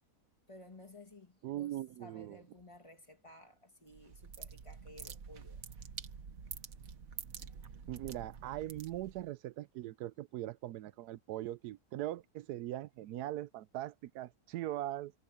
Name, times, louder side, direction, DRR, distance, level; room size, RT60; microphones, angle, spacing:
voice 1, 0.5-5.9, left 1 dB, 20° left, 2.1 m, -56 dB
voice 2, 1.4-2.4 7.9-15.1, right 14 dB, 85° right, 1.1 m, -41 dB
sound 1, 3.9-9.3, right 6 dB, 60° right, 1.7 m, -48 dB
omnidirectional pair, 1.7 m